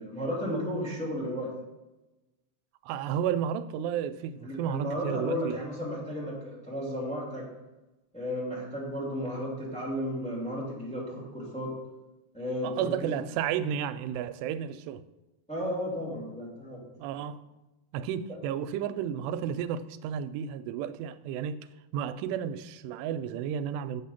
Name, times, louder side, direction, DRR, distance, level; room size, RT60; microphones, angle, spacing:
voice 1, 0.0-1.5 4.4-7.5 8.1-11.7 12.3-13.1 15.5-16.8, equal, ahead, 2.1 m, -33 dB
voice 2, 2.8-5.6 12.6-15.0 17.0-17.4 17.9-21.6 21.9-24.0, right 9 dB, 85° right, 2.7 m, -32 dB
8.9 x 7.5 x 5.7 m
omnidirectional pair, 4.8 m